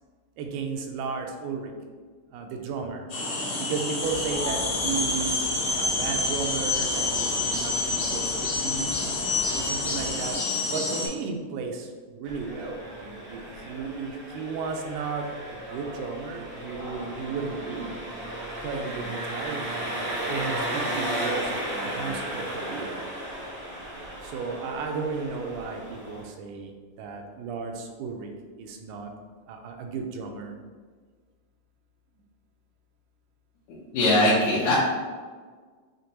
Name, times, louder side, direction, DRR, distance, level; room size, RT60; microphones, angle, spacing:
voice 1, 0.4-1.7 2.3-3.1 3.6-8.9 9.5-10.4 10.7-11.9 12.2-18.0 18.6-23.0 24.2-26.7 27.0-28.3 28.6-29.1 29.5-30.5, right 5 dB, 85° right, 3 dB, 2.1 m, -34 dB
sound 1, 3.1-11.1, left 2 dB, 60° left, 1.5 m, -28 dB
sound 2, 4.0-10.4, left 1 dB, 40° left, 0.7 m, -42 dB
Engine, 12.2-26.2, right 1 dB, 70° right, 0.9 m, -34 dB
voice 2, 33.9-34.7, left 1 dB, 75° left, -9 dB, 2.1 m, -20 dB
6.4 x 2.1 x 2.8 m, 1.5 s
omnidirectional pair, 3.5 m